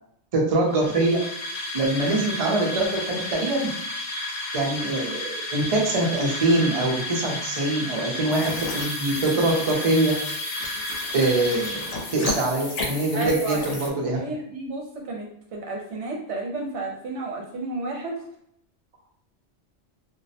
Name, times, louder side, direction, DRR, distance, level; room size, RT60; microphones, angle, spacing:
voice 1, 0.3-1.2 1.7-3.7 4.5-10.1 11.1-11.8 12.1-14.2, right 2 dB, 45° right, -1 dB, 0.5 m, -23 dB
sound 1, 0.7-12.5, left 1 dB, 50° left, 0.4 m, -32 dB
sound 2, 8.3-13.9, left 3 dB, 80° left, 0.9 m, -34 dB
voice 2, 13.1-13.7 14.1-15.3 15.5-18.1, right 3 dB, 75° right, 0 dB, 0.9 m, -31 dB
2.4 x 2.0 x 2.6 m, 0.73 s
omnidirectional pair, 1.2 m